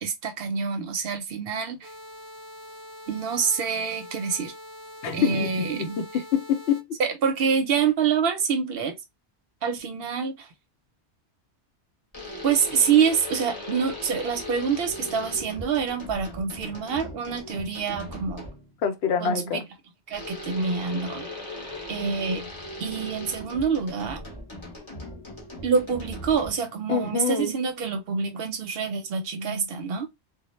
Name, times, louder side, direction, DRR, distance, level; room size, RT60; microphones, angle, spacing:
voice 1, 0.0-1.9 3.1-4.5 5.1-6.0 7.0-8.9 9.6-10.5 12.4-18.5 19.2-19.6 20.1-21.3 21.9-22.4 22.8-24.2 25.6-30.1, right 6 dB, 65° right, 0.7 m, -26 dB
sound 1, 1.8-6.8, left 1 dB, 5° right, 0.5 m, -44 dB
voice 2, 5.0-6.9 18.8-19.6 26.9-27.5, left 7 dB, 75° left, 0.8 m, -26 dB
sound 2, 12.1-18.7 20.1-26.8, left 1 dB, 30° left, 0.8 m, -38 dB
2.1 x 2.0 x 3.0 m
omnidirectional pair, 1.2 m